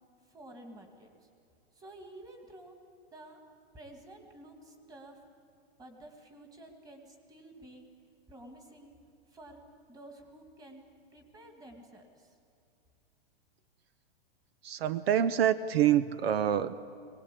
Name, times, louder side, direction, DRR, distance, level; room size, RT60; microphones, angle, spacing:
voice 1, 0.3-1.1 1.8-2.7 3.1-3.4 3.7-5.2 5.8-7.9 8.3-8.9 9.3-9.6 9.9-10.8 11.1-12.3, right 1 dB, 10° right, 4 dB, 2.1 m, -51 dB
voice 2, 14.6-16.7, right 10 dB, 75° right, 15 dB, 0.8 m, -26 dB
22.5 x 19.5 x 8.3 m, 2.4 s
hypercardioid pair, 150°, 30 cm